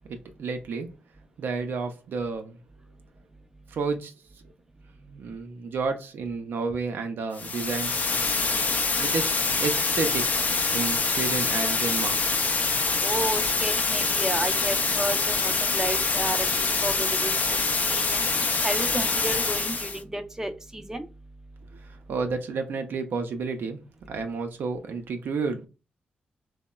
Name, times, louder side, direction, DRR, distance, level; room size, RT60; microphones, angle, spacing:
voice 1, 0.1-0.9 1.4-2.6 3.7-4.2 5.1-7.9 8.9-10.3 10.7-12.2 21.7-23.8 24.1-25.7, right 4 dB, 75° right, 0.4 m, -31 dB
sound 1, 7.3-20.0, left 4 dB, 45° left, 0.4 m, -25 dB
voice 2, 13.0-17.6 17.9-21.1, right 1 dB, 15° right, 0.5 m, -32 dB
2.9 x 2.0 x 2.2 m
supercardioid pair, 50°, 4 cm